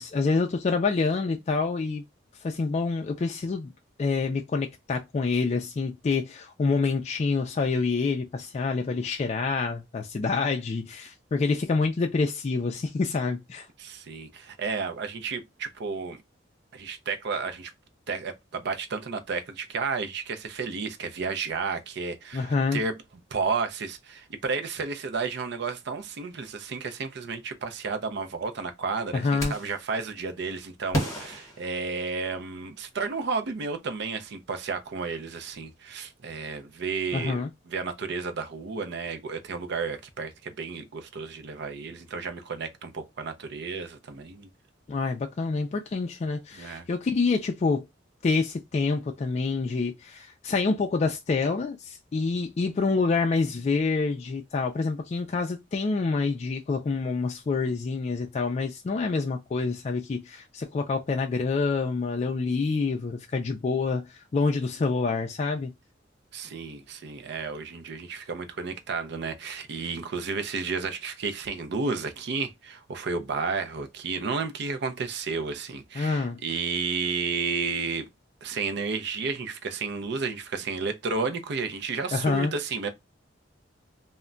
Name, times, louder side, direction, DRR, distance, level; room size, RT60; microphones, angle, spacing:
voice 1, 0.0-2.0 2.4-3.7 4.0-13.7 22.3-22.8 29.1-29.5 37.1-37.5 44.9-47.9 48.2-65.7 76.0-76.4 82.1-82.5, left 4 dB, 35° left, 0.3 m, -27 dB
voice 2, 13.8-16.2 16.7-17.7 18.1-23.0 23.3-44.5 46.6-46.9 66.3-78.1 78.4-82.9, right 4 dB, 65° right, 0.5 m, -32 dB
sound 1, 29.4-29.9 30.9-32.4, equal, 15° left, 1.1 m, -32 dB
2.2 x 2.1 x 3.7 m
head